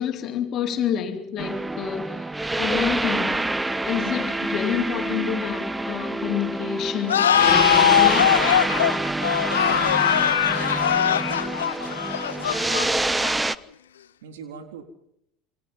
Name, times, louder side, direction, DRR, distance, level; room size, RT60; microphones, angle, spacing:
voice 1, 0.0-2.3 2.6-3.5 3.8-8.4, left 8 dB, 50° left, 4.1 m, -28 dB
sound 1, 1.4-13.6, right 2 dB, 10° right, 1.0 m, -27 dB
sound 2, 7.1-13.5, left 10 dB, 85° left, 0.8 m, -21 dB
voice 2, 9.3-10.2 14.2-14.8, right 7 dB, 80° right, 3.7 m, -40 dB
27.5 x 23.0 x 5.5 m
hypercardioid pair, 75°, 0 cm